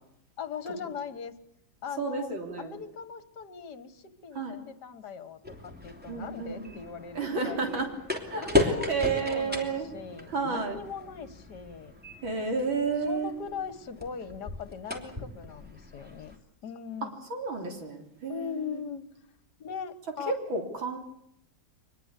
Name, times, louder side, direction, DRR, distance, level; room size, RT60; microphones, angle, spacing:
voice 1, 0.4-1.3 1.8-2.3 2.6-7.8 8.3-11.9 13.1-16.4 16.6-17.1 18.3-19.1 19.6-20.3, left 6 dB, 60° left, 13 dB, 1.9 m, -40 dB
voice 2, 2.0-2.8 4.4-4.6 6.1-6.7 7.1-9.9 10.3-10.8 12.2-13.3 17.3-18.8 20.3-21.0, right 4 dB, 75° right, 3 dB, 4.3 m, -31 dB
sound 1, 5.4-16.4, left 3 dB, 5° right, 3.0 m, -35 dB
23.5 x 20.5 x 8.3 m, 0.72 s
omnidirectional pair, 2.1 m